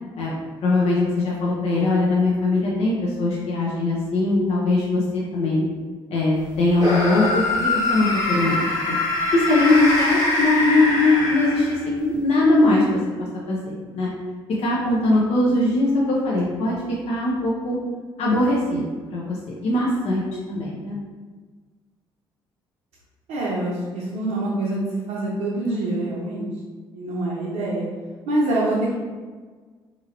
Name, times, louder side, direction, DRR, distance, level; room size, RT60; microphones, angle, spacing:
voice 1, 0.6-5.7 6.1-8.9 9.3-14.1 14.6-16.7 17.1-17.8 18.2-19.4 19.6-21.0, left 2 dB, 60° left, -5 dB, 0.7 m, -21 dB
sound 1, 6.7-12.0, left 2 dB, 75° left, 1.0 m, -23 dB
voice 2, 23.3-24.8 25.1-26.5 26.9-27.9 28.3-28.8, right 2 dB, 75° right, -7 dB, 0.7 m, -25 dB
2.9 x 2.7 x 2.6 m, 1.4 s
hypercardioid pair, 50°, 12 cm